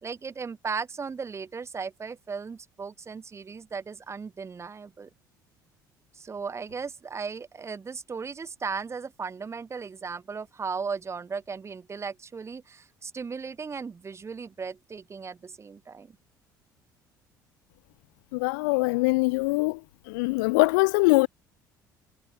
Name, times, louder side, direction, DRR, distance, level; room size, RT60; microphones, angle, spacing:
voice 1, 0.0-5.1 6.1-16.2, right 5 dB, 25° right, 1.3 m, -36 dB
voice 2, 18.3-19.8 20.1-21.3, left 26 dB, 65° left, 0.6 m, -22 dB
figure-of-eight pair, 55°, 10 cm